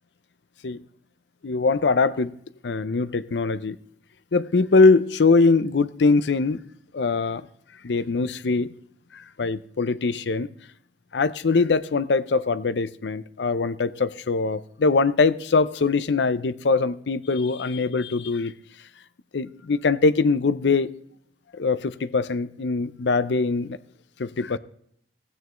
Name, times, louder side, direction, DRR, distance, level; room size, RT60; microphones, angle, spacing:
voice 1, 1.4-2.3 2.6-3.8 4.3-6.6 6.9-7.4 7.8-8.7 9.1-10.5 11.1-18.6 19.3-20.9 21.5-23.8 24.2-24.6, left 4 dB, 75° left, 0.6 m, -22 dB
16.0 x 9.2 x 3.1 m
head